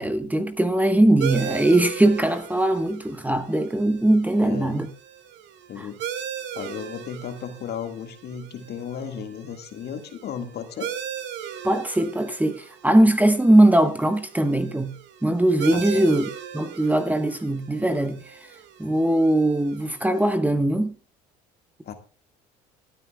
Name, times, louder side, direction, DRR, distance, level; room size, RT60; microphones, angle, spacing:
voice 1, 0.0-4.9 11.6-14.9 15.2-18.2 18.8-20.9, right 1 dB, 10° right, 1.2 m, -20 dB
sound 1, 1.2-20.3, right 9 dB, 65° right, 1.7 m, -38 dB
voice 2, 4.4-4.8 5.7-6.0 6.5-10.9 15.7-16.1 21.8-21.9, left 7 dB, 55° left, 1.9 m, -34 dB
25.0 x 9.0 x 2.3 m
hypercardioid pair, 65°, 20 cm